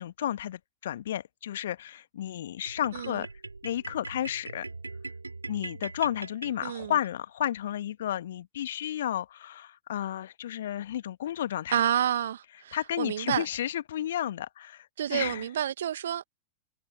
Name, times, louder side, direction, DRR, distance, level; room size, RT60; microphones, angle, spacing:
voice 1, 0.0-3.3 3.6-4.7 5.5-11.8 12.7-15.5, left 11 dB, 60° left, 1.7 m, -32 dB
sound 1, 2.7-7.1, right 3 dB, 80° right, 4.4 m, -42 dB
voice 2, 2.9-3.2 6.6-7.0 11.7-13.5 15.0-16.4, right 10 dB, 65° right, 2.2 m, -29 dB
figure-of-eight pair, 90°, 0 cm